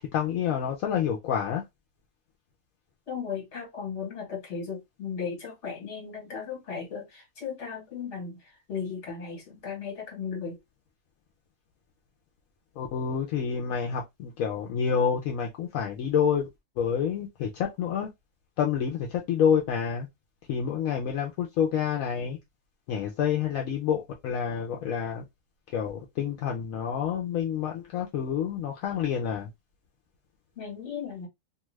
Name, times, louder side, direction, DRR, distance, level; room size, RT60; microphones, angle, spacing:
voice 1, 0.1-1.6 12.8-16.5 16.8-18.1 18.6-20.1 20.5-22.4 22.9-25.2 25.7-29.5, left 8 dB, 80° left, 1.0 m, -28 dB
voice 2, 3.1-8.4 8.7-10.6 30.6-31.3, left 6 dB, 55° left, 1.6 m, -36 dB
2.7 x 2.3 x 3.1 m
omnidirectional pair, 1.4 m